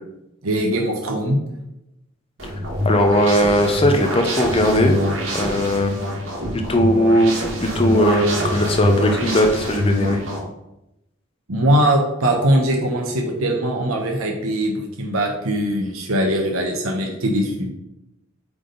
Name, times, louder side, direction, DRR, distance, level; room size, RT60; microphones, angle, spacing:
voice 1, 0.4-1.4 11.5-17.7, right 1 dB, 85° right, 1 dB, 1.0 m, -21 dB
sound 1, 2.4-10.4, left 1 dB, 70° right, 1.7 m, -24 dB
voice 2, 2.8-5.0 5.3-6.0 6.5-10.2, equal, 25° left, 4 dB, 0.7 m, -18 dB
8.1 x 3.5 x 3.9 m, 0.90 s
head